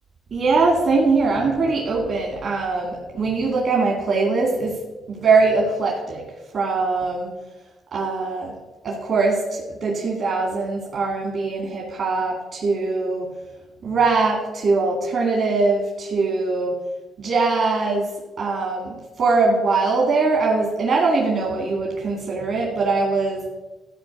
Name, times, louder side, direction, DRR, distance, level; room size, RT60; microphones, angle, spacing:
voice 1, 0.3-4.8 5.1-6.2 6.5-7.3 7.9-8.5 8.8-13.3 13.8-16.8 17.2-18.1 18.4-23.4, right 3 dB, 55° right, -1 dB, 2.3 m, -21 dB
13.5 x 4.7 x 7.2 m, 1.1 s
cardioid pair, 90°, 0 cm